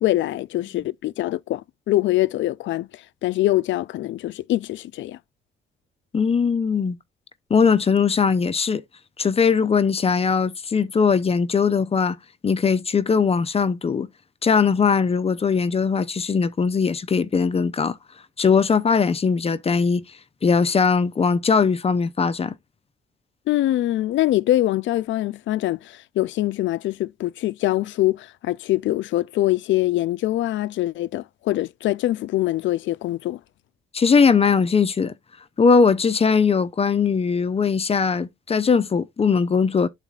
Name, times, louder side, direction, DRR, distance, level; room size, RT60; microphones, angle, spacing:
voice 1, 0.0-5.2 23.5-33.4, left 15 dB, 70° left, 0.4 m, -23 dB
voice 2, 6.1-7.0 7.5-8.8 9.2-12.2 12.4-14.1 14.4-18.0 18.4-20.0 20.4-22.5 33.9-35.1 35.6-39.9, left 5 dB, 30° left, 0.6 m, -20 dB
11.5 x 4.1 x 2.4 m
cardioid pair, 90°, 20 cm